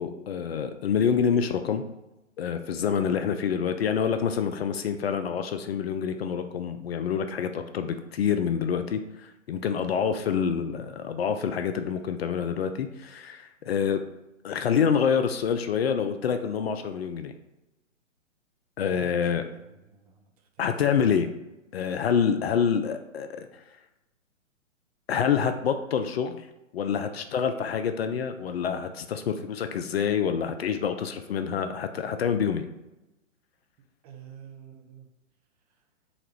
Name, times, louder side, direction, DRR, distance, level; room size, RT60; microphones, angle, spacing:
voice 1, 0.0-1.8 2.4-14.0 14.4-17.3 18.8-19.4 20.6-21.3 21.7-23.5 25.1-26.4 26.7-32.7, left 7 dB, 50° left, 8 dB, 0.4 m, -27 dB
voice 2, 18.9-20.3 34.0-35.0, right 6 dB, 30° right, 2 dB, 0.6 m, -48 dB
4.0 x 2.4 x 4.4 m, 0.98 s
figure-of-eight pair, 125°, 39 cm